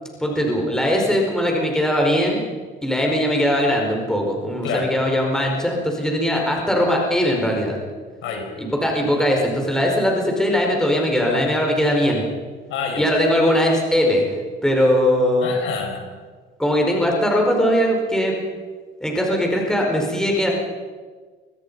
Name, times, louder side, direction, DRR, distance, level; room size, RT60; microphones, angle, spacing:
voice 1, 0.2-2.4 2.8-7.8 8.6-12.2 13.0-14.2 14.6-15.5 16.6-18.3 19.0-20.5, equal, 5° left, 0 dB, 4.8 m, -20 dB
voice 2, 12.7-13.0 15.4-16.1, left 6 dB, 75° left, 3 dB, 5.6 m, -27 dB
24.5 x 19.5 x 5.5 m, 1.5 s
cardioid pair, 125°, 20 cm